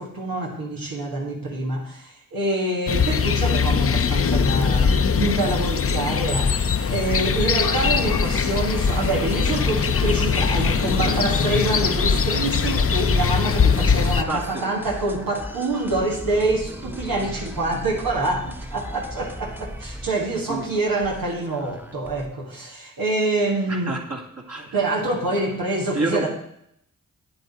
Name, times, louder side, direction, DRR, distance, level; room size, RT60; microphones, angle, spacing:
voice 1, 0.0-23.9 24.7-26.3, right 2 dB, 85° right, -2 dB, 1.8 m, -26 dB
sound 1, 2.9-14.2, left 6 dB, 40° left, 0.6 m, -21 dB
sound 2, 6.9-11.9, left 5 dB, 65° left, 1.0 m, -34 dB
sound 3, 7.8-22.3, equal, 5° right, 1.0 m, -37 dB
voice 2, 10.6-11.0 13.6-13.8 14.3-14.8 15.4-15.5 16.8-17.2 20.5-20.7 21.5-21.6 23.7-24.8 25.9-26.3, right 3 dB, 45° right, -1 dB, 2.0 m, -31 dB
8.5 x 7.9 x 4.2 m, 0.72 s
cardioid pair, 40°, 34 cm